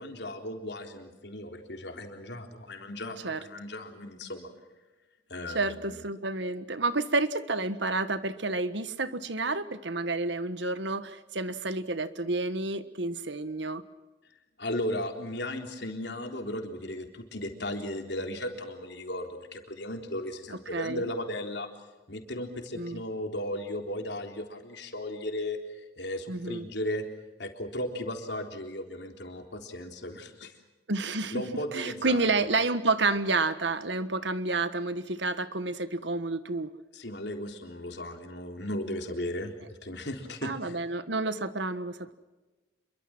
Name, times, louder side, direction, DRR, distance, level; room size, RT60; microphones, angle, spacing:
voice 1, 0.0-4.5 5.3-5.6 14.6-21.7 22.1-27.1 27.4-30.5 31.3-32.6 36.9-40.8, left 1 dB, 65° left, 4 dB, 3.7 m, -36 dB
voice 2, 5.5-13.8 20.7-21.0 22.7-23.0 26.3-26.6 30.9-31.4 31.7-36.7 40.4-42.1, right 3 dB, 70° right, 12 dB, 1.5 m, -30 dB
27.5 x 23.5 x 6.1 m, 1.2 s
head